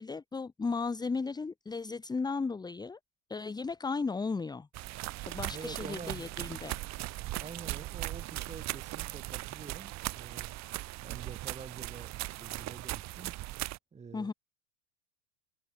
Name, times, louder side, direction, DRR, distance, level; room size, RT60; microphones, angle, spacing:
voice 1, 0.0-3.0 3.3-4.7 5.2-6.8 14.1-14.3, left 4 dB, 10° left, 1.7 m, -35 dB
sound 1, 4.7-13.8, right 17 dB, 40° right, 2.9 m, -39 dB
voice 2, 5.5-6.6 7.4-10.5 11.0-13.3 13.9-14.3, right 5 dB, 15° right, 6.6 m, -47 dB
supercardioid pair, 150°, 42 cm